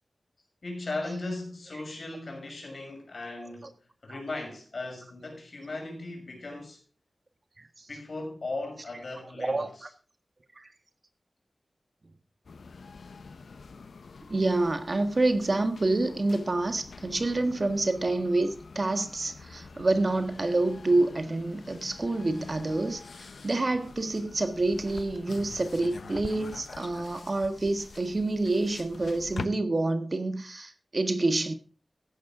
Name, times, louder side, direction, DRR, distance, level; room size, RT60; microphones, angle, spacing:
voice 1, 0.6-3.7 4.0-6.8 7.9-9.9, left 2 dB, 60° left, 6.4 m, -37 dB
voice 2, 7.6-7.9 9.4-9.9 10.6-10.7 14.3-31.5, right 2 dB, 40° right, 1.5 m, -28 dB
sound 1, 12.4-29.5, left 4 dB, 85° left, 0.9 m, -45 dB
14.5 x 11.0 x 3.8 m
wide cardioid pair, 95°, 0 cm